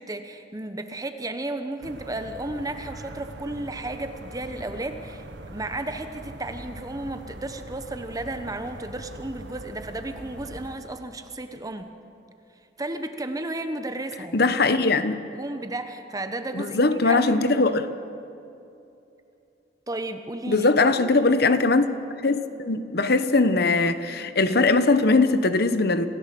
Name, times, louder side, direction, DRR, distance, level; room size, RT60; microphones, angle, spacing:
voice 1, 0.0-12.0 12.8-14.8 15.3-17.8 19.9-20.7 21.0-21.1, right 2 dB, 20° right, 1.0 m, -33 dB
sound 1, 1.8-10.8, right 1 dB, 85° right, 1.5 m, -42 dB
voice 2, 14.3-15.2 16.5-17.8 20.5-21.9 22.2-26.1, left 3 dB, 60° left, 1.1 m, -20 dB
28.0 x 16.0 x 7.7 m
head